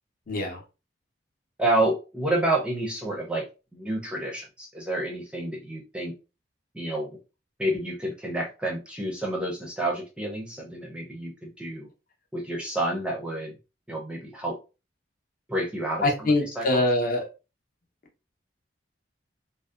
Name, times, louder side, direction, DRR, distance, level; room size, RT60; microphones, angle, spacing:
voice 1, 0.3-0.6 16.0-17.3, left 1 dB, 50° left, 0.6 m, -24 dB
voice 2, 1.6-3.4 3.7-6.1 6.7-7.2 7.6-11.9 12.3-13.6 13.9-14.6 15.5-16.8, right 1 dB, 5° right, 0.5 m, -29 dB
2.6 x 2.0 x 2.3 m
head